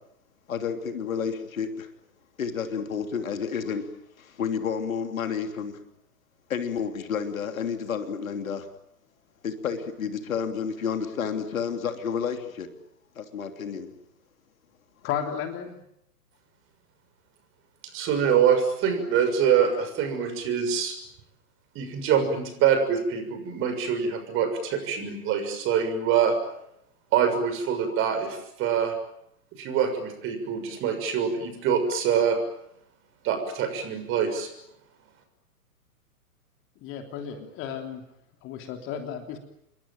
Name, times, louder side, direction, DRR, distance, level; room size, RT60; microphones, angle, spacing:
voice 1, 0.5-1.9 2.4-3.8 4.4-5.7 6.5-8.6 9.4-12.7 13.2-13.9, left 6 dB, 60° left, 7 dB, 3.1 m, -30 dB
voice 2, 15.0-15.8 36.8-38.0 38.4-39.4, left 8 dB, 25° left, 5 dB, 3.3 m, -33 dB
voice 3, 17.9-21.0 21.7-26.4 27.1-29.0 29.6-32.4 33.2-34.5, right 7 dB, 25° right, 8 dB, 6.5 m, -25 dB
28.5 x 23.0 x 9.2 m, 0.79 s
figure-of-eight pair, 120°, 46 cm